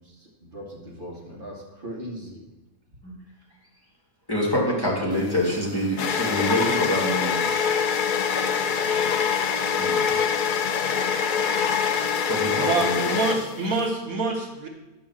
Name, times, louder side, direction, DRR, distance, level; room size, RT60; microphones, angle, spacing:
voice 1, 0.0-2.5, equal, 35° right, -3 dB, 2.0 m, -39 dB
voice 2, 4.3-7.4 9.7-10.2 12.3-13.1, left 1 dB, 15° left, -4 dB, 2.4 m, -26 dB
sound 1, 5.2-13.9, left 6 dB, 65° left, 0.5 m, -24 dB
voice 3, 12.5-14.7, right 4 dB, 70° right, 2 dB, 1.5 m, -26 dB
11.5 x 3.9 x 7.3 m, 1.0 s
omnidirectional pair, 1.5 m